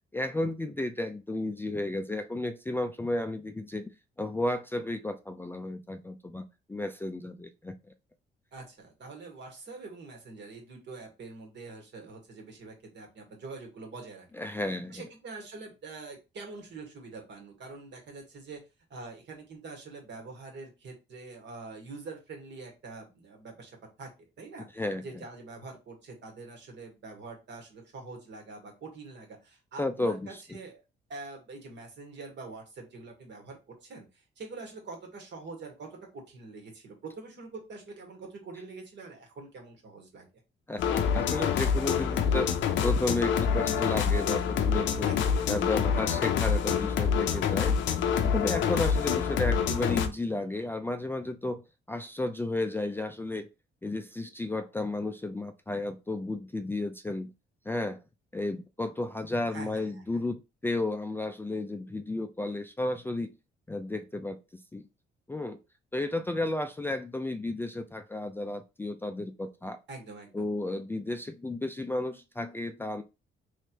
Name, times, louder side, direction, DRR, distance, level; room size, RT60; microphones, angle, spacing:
voice 1, 0.1-3.9 4.2-7.8 14.4-15.0 24.7-25.2 29.8-30.3 40.7-42.5 42.8-45.1 45.5-47.8 48.2-53.5 53.8-57.3 57.7-58.0 58.3-63.3 63.7-64.9 65.3-65.6 65.9-69.8 70.3-73.0, left 2 dB, 10° left, 0.3 m, -33 dB
voice 2, 8.5-14.4 14.9-18.6 18.9-30.8 31.1-40.3 45.0-45.5 59.5-60.3 69.9-70.5, right 3 dB, 65° right, 1.6 m, -45 dB
sound 1, 40.8-50.1, left 7 dB, 75° left, 0.6 m, -26 dB
3.1 x 3.1 x 2.8 m
cardioid pair, 90°, 20 cm